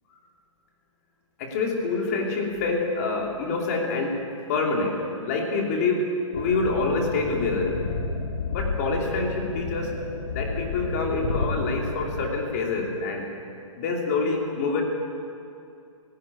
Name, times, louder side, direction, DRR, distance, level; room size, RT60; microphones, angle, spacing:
voice 1, 1.4-4.2 4.5-7.8 8.5-9.9 10.3-13.3 13.8-14.8, left 3 dB, 25° left, 1 dB, 2.9 m, -26 dB
sound 1, 6.3-12.3, left 3 dB, 55° left, 2.2 m, -31 dB
17.5 x 15.5 x 9.8 m, 2.6 s
hypercardioid pair, 175°, 17 cm